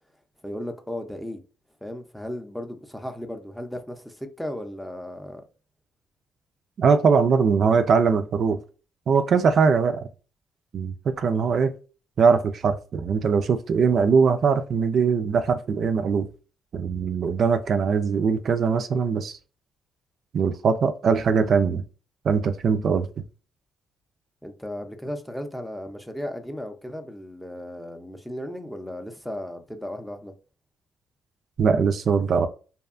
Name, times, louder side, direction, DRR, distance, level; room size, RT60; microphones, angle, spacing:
voice 1, 0.4-1.4 1.8-5.4 9.3-9.4 24.4-30.3, left 1 dB, 5° left, 0.5 m, -35 dB
voice 2, 6.8-8.6 9.1-10.1 10.7-11.7 12.2-16.3 16.7-19.4 20.3-21.8 22.2-23.1 31.6-32.5, right 5 dB, 55° right, 0.3 m, -21 dB
2.7 x 2.2 x 2.4 m
cardioid pair, 90°, 0 cm